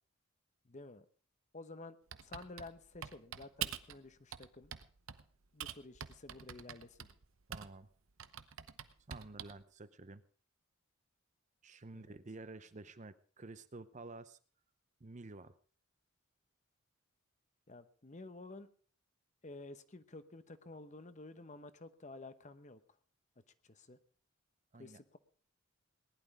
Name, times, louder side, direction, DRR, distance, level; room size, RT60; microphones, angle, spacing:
voice 1, 0.6-1.0 1.5-2.0 2.2-4.7 5.5-7.1 11.9-12.2 17.7-18.7 19.4-22.8 23.6-24.0 24.8-25.2, left 2 dB, 35° left, 12 dB, 1.0 m, -51 dB
Typing, 2.1-4.0 4.3-5.2 5.6-7.8 8.2-9.6, right 9 dB, 70° right, 0.9 m, -45 dB
voice 2, 7.5-7.9 9.1-10.2 11.6-14.4 15.0-15.6 24.7-25.0, right 2 dB, 35° right, 13 dB, 0.7 m, -51 dB
19.0 x 11.5 x 5.0 m, 0.43 s
head